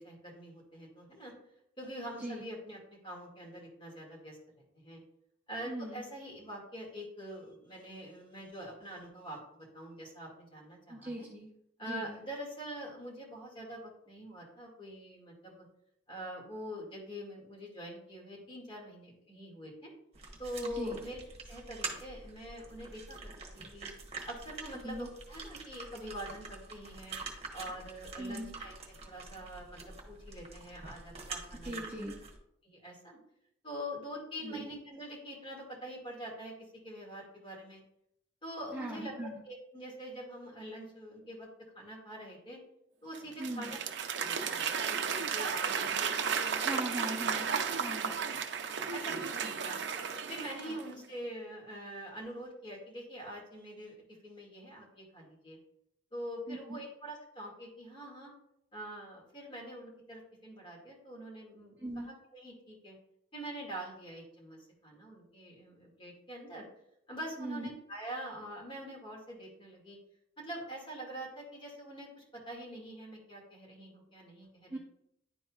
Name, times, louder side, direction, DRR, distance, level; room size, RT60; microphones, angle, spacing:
voice 1, 0.0-1.3 1.8-4.4 4.7-5.0 5.5-11.3 11.8-15.7 16.1-19.9 20.4-21.2 21.5-23.3 23.7-23.9 24.3-27.2 27.5-29.8 30.1-31.8 32.6-33.2 33.6-36.5 36.8-37.8 38.4-41.5 41.7-42.6 43.0-43.8 44.1-46.2 46.5-47.0 47.9-48.2 48.9-49.8 50.3-54.0 54.2-55.6 56.1-58.3 58.7-63.0 63.3-66.7 67.1-70.0 70.4-74.8, equal, 30° left, -3 dB, 2.1 m, -44 dB
voice 2, 5.6-6.0 10.9-11.5 11.9-12.2 20.6-21.0 24.8-25.1 28.2-28.5 31.6-32.2 34.4-34.6 38.7-39.4 43.4-43.8 46.6-47.5 47.8-48.1 50.7-50.8 56.5-56.8 61.8-62.1 67.4-67.7 74.7-74.8, right 1 dB, 10° right, -3 dB, 0.8 m, -40 dB
sound 1, 20.1-32.4, right 3 dB, 35° right, 1.2 m, -46 dB
Applause / Crowd, 43.1-50.9, right 6 dB, 65° right, 0.6 m, -34 dB
10.5 x 4.2 x 2.4 m, 0.76 s
head